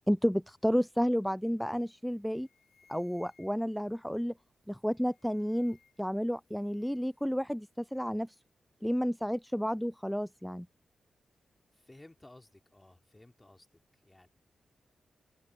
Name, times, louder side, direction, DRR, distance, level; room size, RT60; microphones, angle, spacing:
voice 1, 0.1-2.5 2.9-4.3 4.7-8.4 8.8-10.7, equal, ahead, 0.3 m, -31 dB
sound 1, 1.7-1.9 2.2-3.9 4.7-6.2 6.4-7.2, left 6 dB, 60° left, 1.4 m, -68 dB
voice 2, 11.7-13.7 13.9-14.3, left 1 dB, 20° left, 3.2 m, -56 dB
supercardioid pair, 40°, 0 cm